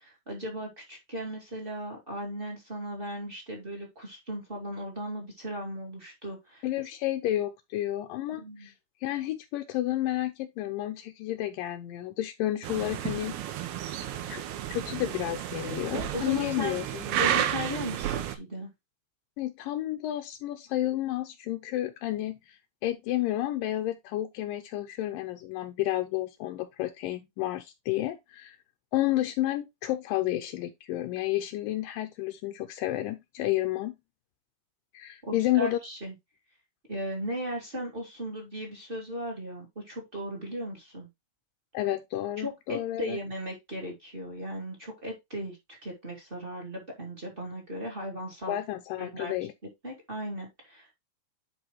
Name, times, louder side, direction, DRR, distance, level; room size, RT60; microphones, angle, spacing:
voice 1, 0.0-6.6 8.4-8.7 16.1-16.8 17.0-18.7 35.2-36.1 36.9-41.1 42.4-45.6 45.8-48.6 49.0-49.3 49.8-50.9, equal, 20° right, 1.4 m, -37 dB
voice 2, 6.6-8.7 9.0-13.4 14.3-14.4 14.7-17.0 19.4-28.6 28.9-33.9 34.9-35.8 41.7-43.2 48.5-49.5, left 14 dB, 85° left, 2.0 m, -31 dB
sound 1, 12.6-18.4, right 11 dB, 80° right, 2.6 m, -32 dB
10.5 x 3.7 x 3.0 m
omnidirectional pair, 4.6 m